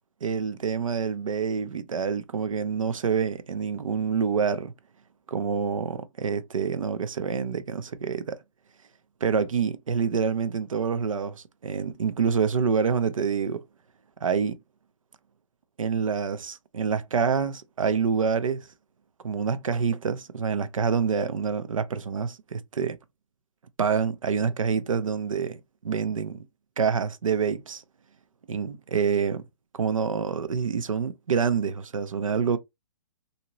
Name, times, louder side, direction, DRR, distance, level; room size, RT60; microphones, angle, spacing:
voice 1, 0.2-4.7 5.3-8.4 9.2-13.6 14.2-14.6 15.8-18.7 19.2-23.0 23.8-26.4 26.8-27.8 28.5-29.4 29.7-32.6, right 6 dB, 80° right, 0.5 m, -27 dB
2.9 x 2.7 x 2.9 m
figure-of-eight pair, 130°, 17 cm